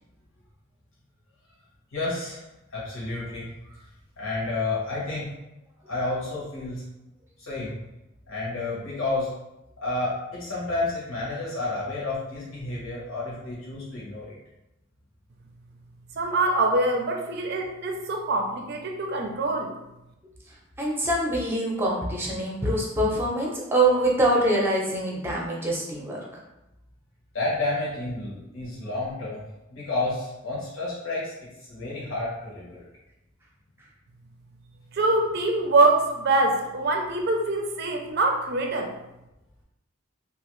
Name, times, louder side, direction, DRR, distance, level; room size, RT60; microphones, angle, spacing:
voice 1, 1.9-2.4 2.7-3.9 4.2-5.3 5.9-6.8 7.4-7.8 8.3-9.3 9.8-14.4 27.3-29.4 29.7-31.3 31.7-32.9, left 2 dB, 80° left, -6 dB, 1.0 m, -30 dB
voice 2, 16.2-19.7 34.9-38.9, right 2 dB, 55° right, 3 dB, 0.5 m, -24 dB
voice 3, 20.8-26.2, right 1 dB, 10° right, -3 dB, 0.6 m, -24 dB
2.9 x 2.4 x 3.0 m, 0.93 s
head